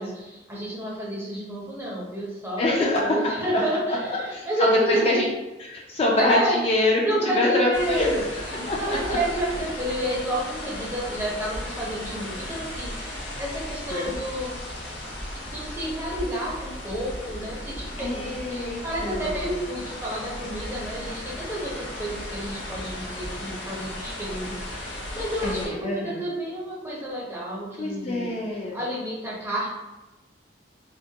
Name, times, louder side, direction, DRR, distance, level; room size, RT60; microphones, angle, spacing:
voice 1, 0.0-5.2 6.2-6.6 7.0-14.5 15.4-28.3 28.7-29.7, right 1 dB, 15° right, -5 dB, 0.5 m, -30 dB
voice 2, 2.6-3.2 3.5-3.6 4.1-4.5 4.9-5.3 5.6-7.0 7.4-8.1 8.7-9.2 13.9-14.1 18.0-19.5 25.4-26.2 27.8-28.8, left 2 dB, 35° left, -2 dB, 0.3 m, -25 dB
sound 1, 7.7-25.7, left 1 dB, 65° left, 0.8 m, -36 dB
2.3 x 2.2 x 2.6 m, 1.1 s
head